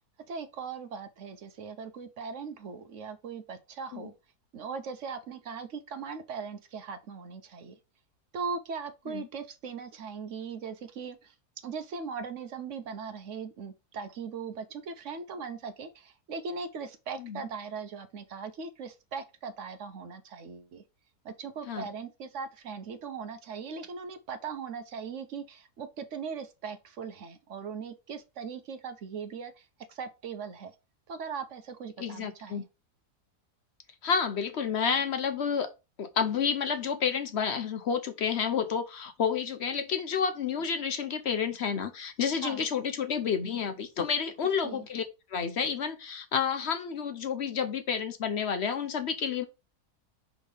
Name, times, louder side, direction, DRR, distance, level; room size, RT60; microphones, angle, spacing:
voice 1, 0.3-4.1 4.5-7.8 8.3-11.3 11.6-20.8 21.2-30.7 31.1-32.6 42.4-42.7 44.6-44.9, right 5 dB, 60° right, 0.9 m, -39 dB
voice 2, 32.0-32.6 34.0-35.7 36.0-45.0 45.3-49.4, left 6 dB, 55° left, 0.8 m, -30 dB
5.0 x 3.7 x 5.3 m
omnidirectional pair, 1.7 m